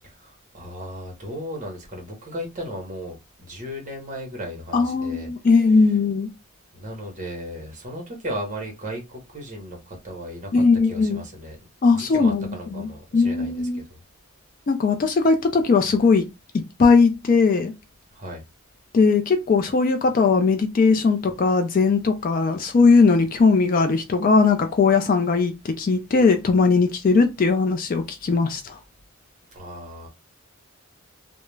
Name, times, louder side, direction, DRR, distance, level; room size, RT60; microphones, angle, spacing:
voice 1, 0.2-5.3 6.7-11.6 11.9-14.0 18.1-18.4 29.5-30.1, equal, 35° right, 0.8 m, -36 dB
voice 2, 4.7-6.3 10.5-11.2 11.8-13.8 14.7-16.3 16.8-17.7 18.9-28.8, left 4 dB, 40° left, 0.3 m, -19 dB
2.3 x 2.0 x 3.1 m
head